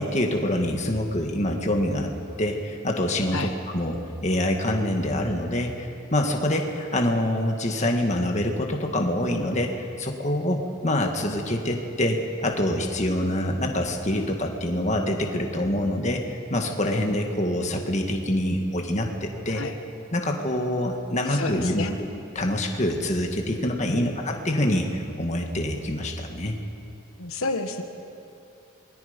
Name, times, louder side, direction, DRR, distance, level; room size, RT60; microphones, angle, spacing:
voice 1, 0.0-2.1 2.4-19.6 20.1-21.9 22.4-26.6, left 1 dB, 35° left, 2 dB, 1.9 m, -26 dB
voice 2, 21.3-22.0 23.9-24.2 27.2-27.8, left 3 dB, 85° left, 5 dB, 1.4 m, -30 dB
27.5 x 22.0 x 5.3 m, 2.8 s
head